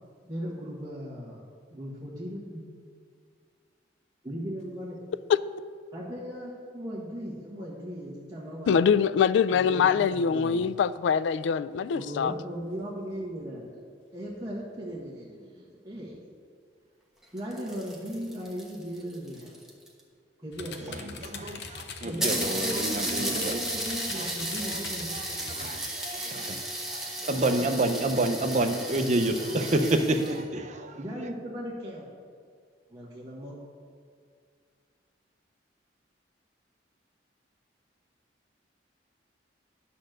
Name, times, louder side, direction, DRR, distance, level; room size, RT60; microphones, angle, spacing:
voice 1, 0.2-1.4 1.7-2.7 4.2-5.0 5.9-9.0 9.5-10.7 11.9-13.8 14.1-16.2 17.3-19.6 20.4-20.9 22.0-25.1 30.9-32.1 32.9-33.5, equal, 20° right, 1.4 m, -37 dB
voice 2, 8.7-12.3, left 7 dB, 80° left, 0.3 m, -23 dB
sound 1, 17.2-20.0 20.9-21.0 21.2-21.3 21.6-21.7 22.2-30.4, right 1 dB, 5° right, 1.1 m, -34 dB
sound 2, 20.5-25.8, left 5 dB, 65° left, 0.7 m, -42 dB
voice 3, 20.9-23.6 24.1-24.3 24.6-24.8 25.1-26.6 26.9-31.0, right 1 dB, 40° right, 0.6 m, -29 dB
10.5 x 4.2 x 6.5 m
head